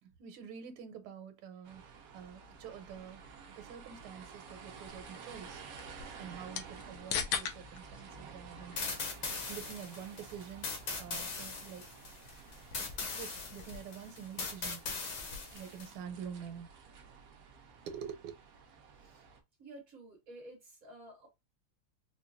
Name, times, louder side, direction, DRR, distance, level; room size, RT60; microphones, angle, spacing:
voice 1, 0.0-5.6 6.2-11.9 13.1-14.8 15.5-16.7 16.9-17.1 17.9-18.4, right 8 dB, 90° right, 1.6 m, -47 dB
sound 1, 1.6-19.4, right 5 dB, 65° right, 0.9 m, -52 dB
sound 2, 4.9-15.6, left 7 dB, 75° left, 1.4 m, -45 dB
sound 3, 8.8-15.9, left 4 dB, 60° left, 1.6 m, -40 dB
voice 2, 19.6-21.3, right 1 dB, 45° right, 1.6 m, -52 dB
4.7 x 2.3 x 2.5 m
omnidirectional pair, 2.3 m